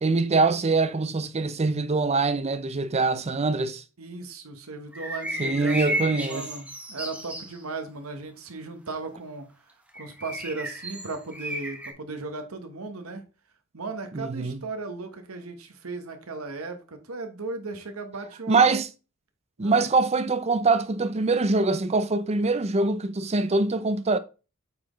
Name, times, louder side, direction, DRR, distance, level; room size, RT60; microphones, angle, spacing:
voice 1, 0.0-3.8 5.4-6.5 14.1-14.6 18.5-18.9 19.6-24.2, right 3 dB, 30° right, 0.5 m, -23 dB
voice 2, 4.0-9.5 9.9-13.2 13.7-18.8 19.6-19.9, right 3 dB, 90° right, 1.2 m, -36 dB
sound 1, 4.9-7.5 9.9-11.9, right 1 dB, 5° right, 1.1 m, -33 dB
8.4 x 4.3 x 3.1 m
head